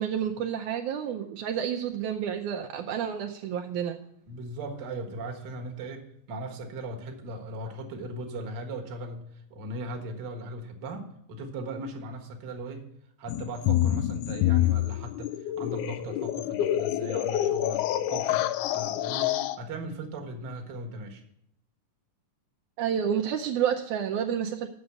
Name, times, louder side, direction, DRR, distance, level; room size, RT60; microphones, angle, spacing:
voice 1, 0.0-4.0 22.8-24.7, right 8 dB, 75° right, 3 dB, 1.9 m, -29 dB
voice 2, 4.3-9.2 9.5-12.9 13.2-21.2, right 1 dB, 45° right, 2 dB, 1.5 m, -38 dB
sound 1, 13.3-19.6, left 12 dB, 80° left, 1.8 m, -27 dB
8.0 x 6.6 x 8.2 m, 0.76 s
omnidirectional pair, 3.9 m